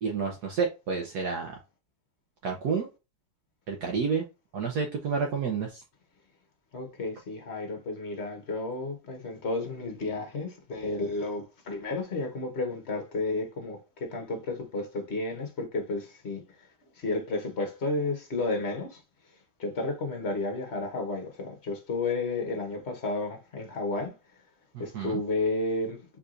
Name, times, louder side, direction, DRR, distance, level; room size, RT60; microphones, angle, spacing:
voice 1, 0.0-1.6 2.4-2.9 3.7-4.2 4.5-5.8 24.9-25.2, right 5 dB, 65° right, 1.3 m, -29 dB
voice 2, 6.7-16.4 17.0-19.0 19.6-24.1 24.8-26.0, left 2 dB, 40° left, 1.3 m, -32 dB
4.6 x 3.9 x 2.5 m
omnidirectional pair, 2.0 m